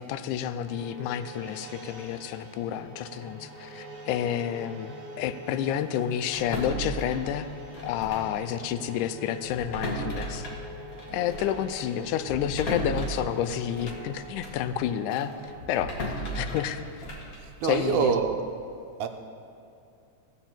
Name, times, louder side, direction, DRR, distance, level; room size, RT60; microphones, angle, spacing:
voice 1, 0.0-7.5 7.8-10.5 11.1-16.8 17.6-18.2, left 10 dB, 90° left, 11 dB, 2.1 m, -30 dB
sound 1, 0.6-15.6, right 1 dB, 40° right, 1.7 m, -44 dB
sound 2, 6.3-8.4 8.6-8.8 9.4-14.7 15.1-18.2, equal, 40° left, 1.3 m, -36 dB
voice 2, 17.4-18.4 19.0-19.1, right 7 dB, 80° right, 6 dB, 2.1 m, -26 dB
16.0 x 5.4 x 7.2 m, 2.5 s
omnidirectional pair, 3.5 m